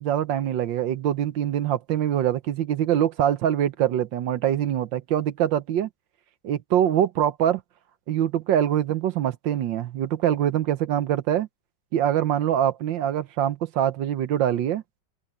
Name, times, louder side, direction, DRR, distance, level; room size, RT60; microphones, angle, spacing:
voice 1, 0.0-5.9 6.4-7.6 8.1-11.5 11.9-14.8, right 10 dB, 70° right, 1.5 m, -24 dB
open air
omnidirectional pair, 2.2 m